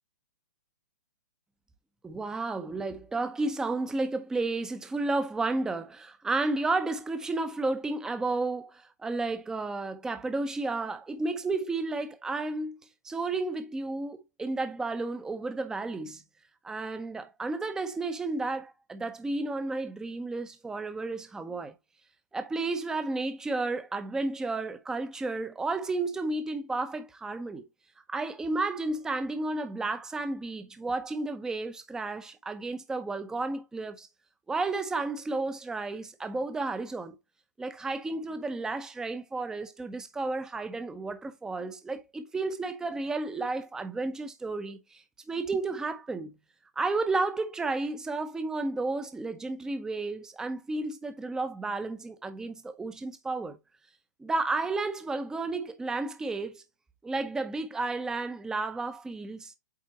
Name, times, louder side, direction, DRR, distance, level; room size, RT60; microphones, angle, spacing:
voice 1, 2.0-12.8 13.0-16.2 16.6-21.7 22.3-27.6 28.1-34.1 34.5-37.2 37.6-46.3 46.8-53.6 54.2-56.6 57.0-59.5, right 3 dB, 5° right, 0.7 m, -32 dB
8.4 x 4.2 x 2.8 m
hypercardioid pair, 135°, 10 cm